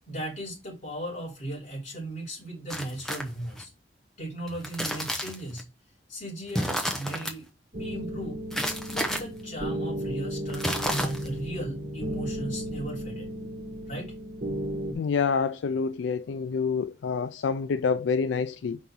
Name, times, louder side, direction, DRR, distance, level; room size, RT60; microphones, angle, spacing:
voice 1, 0.1-3.7 4.2-5.7 6.1-7.4 7.7-8.4 8.9-13.3 13.9-14.1, right 1 dB, 40° left, 3.9 m, -37 dB
sound 1, 2.7-3.6 4.5-5.6 6.5-7.3 8.5-9.2 10.5-11.4, equal, ahead, 0.8 m, -31 dB
sound 2, 7.7-14.9, equal, 45° right, 1.5 m, -34 dB
voice 2, 14.9-18.8, left 5 dB, 80° left, 0.4 m, -27 dB
5.4 x 3.9 x 4.6 m
head